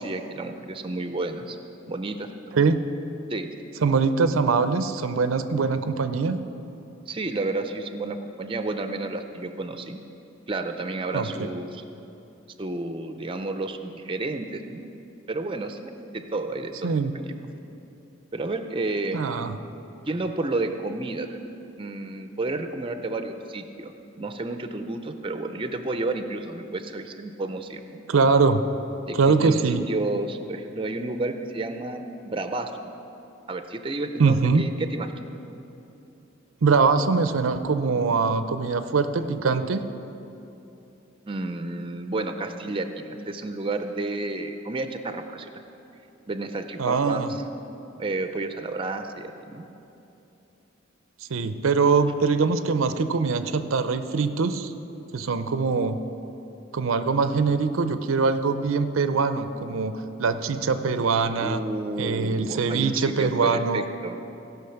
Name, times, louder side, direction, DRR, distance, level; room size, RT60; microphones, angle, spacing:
voice 1, 0.0-1.6 1.9-2.3 3.3-3.5 7.1-10.0 10.5-11.8 12.6-14.9 15.3-17.5 18.3-19.2 20.1-21.4 21.8-28.0 29.1-29.6 29.9-32.7 33.5-35.1 41.3-45.5 46.3-47.4 48.0-49.6 61.4-64.2, right 2 dB, 25° right, 8 dB, 0.5 m, -31 dB
voice 2, 3.8-6.4 11.1-11.5 16.8-17.1 19.1-19.6 28.1-28.6 29.1-29.9 34.2-34.6 36.6-39.8 46.8-47.3 51.3-54.7 55.1-56.0 56.7-59.9 60.2-61.6 62.0-63.8, right 4 dB, 90° right, 10 dB, 0.5 m, -23 dB
16.5 x 5.8 x 5.8 m, 2.9 s
head